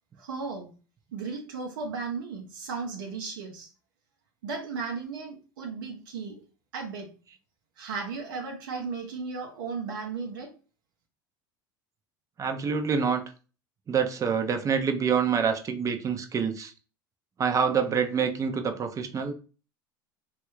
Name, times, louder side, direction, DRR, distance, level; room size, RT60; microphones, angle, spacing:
voice 1, 0.2-0.7 1.1-3.7 4.4-6.4 6.7-7.1 7.8-10.5, right 4 dB, 75° right, 0.7 m, -35 dB
voice 2, 12.4-13.2 13.9-16.7 17.4-19.3, right 6 dB, 30° right, 0.6 m, -26 dB
3.1 x 2.4 x 3.1 m
hypercardioid pair, 80°, 11 cm